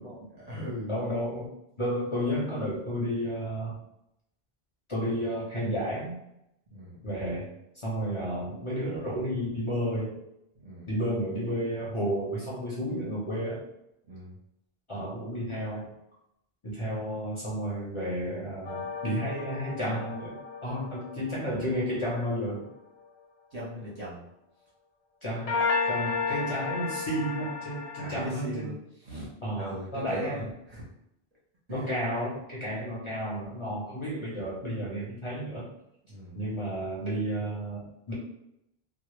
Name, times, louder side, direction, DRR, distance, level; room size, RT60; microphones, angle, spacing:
voice 1, 0.3-0.9 6.7-7.0 10.6-10.9 14.1-14.3 23.5-24.2 28.0-30.9 31.7-31.9 36.1-36.4, equal, 45° right, -6 dB, 0.7 m, -39 dB
voice 2, 0.9-1.5 1.8-3.7 4.9-6.1 7.0-7.5 7.8-10.2 10.9-13.6 14.9-15.9 16.6-22.7 25.2-25.5 25.9-28.7 29.4-30.5 31.7-35.6 36.4-38.1, equal, 35° left, -7 dB, 0.6 m, -32 dB
sound 1, 18.6-22.2 25.5-28.3, left 4 dB, 80° left, 1.0 m, -33 dB
2.0 x 2.0 x 3.0 m, 0.81 s
omnidirectional pair, 1.0 m